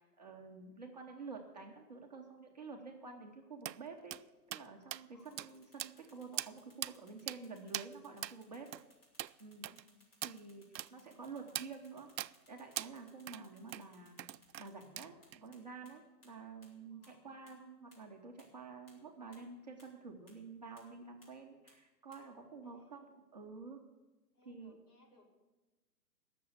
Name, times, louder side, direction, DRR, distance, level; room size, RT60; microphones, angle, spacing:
voice 1, 0.0-4.2 4.5-8.7 9.4-9.7 10.2-12.1 12.5-14.2 14.6-23.0 23.3-23.8 24.5-24.8, right 4 dB, 25° right, 0 dB, 1.0 m, -50 dB
sound 1, 3.6-3.8 4.1-4.2 4.5-4.7 4.9-5.0 5.4-5.5 5.8-6.1 6.4-6.5 6.8-6.9 7.3-7.4 7.7-7.9 8.2-8.4 8.7-8.8 9.2-9.3 9.6-9.8 10.2-10.4 10.7-10.9 11.5-11.7 12.2-12.3 12.8-12.9 13.3-13.4 13.7-13.8 14.2-14.7 15.0-15.4, right 12 dB, 85° right, 0.6 m, -41 dB
voice 2, 5.1-5.7 9.6-10.1 10.9-11.5 16.9-17.3 22.6-23.1 24.3-25.4, left 1 dB, 60° left, -3 dB, 4.7 m, -67 dB
sound 2, 5.2-15.6 15.9-16.0 16.2-16.3 16.6-16.7 17.0-17.1 17.5-17.6 17.9-18.0 18.4-18.5 18.9-19.0 19.3-19.4 19.8-19.9 20.3-20.4 20.8-20.9 21.2-21.3 21.7-21.8 22.1-22.2, left 1 dB, 35° left, 3.9 m, -65 dB
18.0 x 7.0 x 8.1 m, 1.1 s
hypercardioid pair, 180°, 50 cm